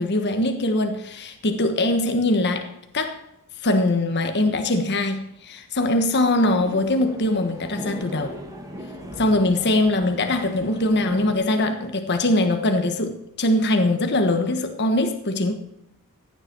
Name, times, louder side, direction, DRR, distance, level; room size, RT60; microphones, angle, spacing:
voice 1, 0.0-2.7 2.9-3.2 3.6-8.3 9.2-15.5, left 1 dB, 50° left, 1.3 m, -22 dB
sound 1, 6.4-11.4, equal, 15° right, 2.0 m, -38 dB
sound 2, 9.0-10.6, left 1 dB, 65° right, 5.6 m, -45 dB
15.5 x 10.0 x 4.5 m
head